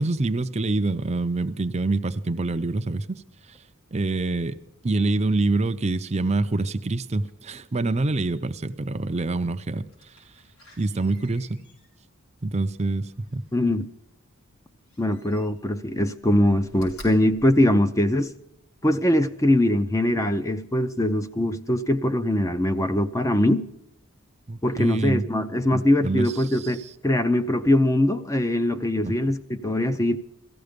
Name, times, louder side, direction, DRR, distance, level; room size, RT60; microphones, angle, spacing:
voice 1, 0.0-3.6 3.9-4.6 4.8-10.3 10.8-11.6 12.4-13.4 24.5-25.2 25.7-26.9 29.0-29.1, right 2 dB, 30° right, 0.5 m, -26 dB
Slam, 9.9-13.8 14.9-15.8 16.2-18.5 19.0-19.1, equal, 75° left, 5.0 m, -50 dB
voice 2, 13.5-13.9 15.0-18.3 18.8-23.7 24.6-30.2, left 1 dB, 15° left, 0.6 m, -22 dB
17.5 x 15.0 x 5.1 m
head